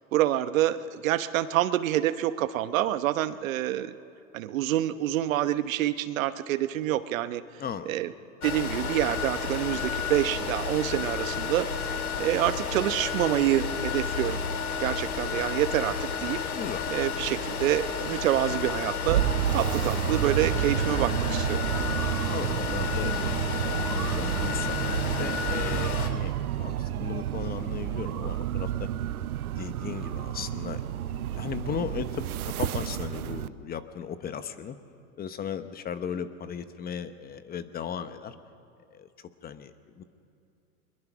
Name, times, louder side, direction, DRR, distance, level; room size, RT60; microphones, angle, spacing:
voice 1, 0.1-3.9 4.3-7.4 7.9-8.1 8.4-11.9 12.2-14.4 14.8-16.4 16.9-19.2 19.5-21.6, right 13 dB, 70° right, 13 dB, 1.0 m, -27 dB
voice 2, 7.6-7.9 16.5-16.8 22.3-24.8 25.2-26.3 26.6-28.9 29.6-32.3 32.6-34.8 35.2-38.3 38.9-39.1 39.4-40.0, left 8 dB, 20° left, 11 dB, 0.9 m, -36 dB
sound 1, 8.4-26.1, left 5 dB, 90° left, 2.2 m, -31 dB
sound 2, 19.1-33.5, right 11 dB, 90° right, 0.7 m, -30 dB
22.5 x 22.0 x 6.1 m, 2.7 s
hypercardioid pair, 120°, 42 cm